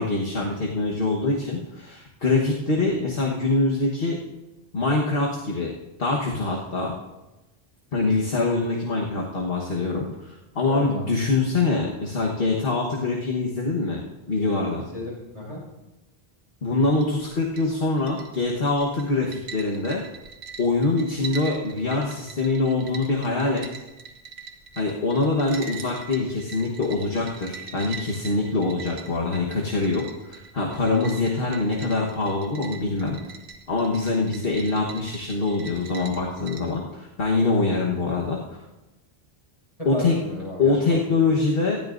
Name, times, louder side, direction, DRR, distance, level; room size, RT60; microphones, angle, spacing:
voice 1, 0.0-4.2 4.7-5.7 6.0-6.9 7.9-14.0 14.3-14.9 16.6-20.0 20.6-23.6 24.8-33.2 33.7-38.6 39.8-40.2 40.6-41.8, left 3 dB, 60° left, -2 dB, 1.5 m, -24 dB
voice 2, 10.6-11.1 14.9-15.6 39.8-41.0, left 1 dB, 30° left, -5 dB, 5.1 m, -34 dB
sound 1, 16.9-36.8, right 5 dB, 80° right, 1.4 m, -42 dB
18.5 x 13.0 x 2.6 m, 1.0 s
omnidirectional pair, 1.1 m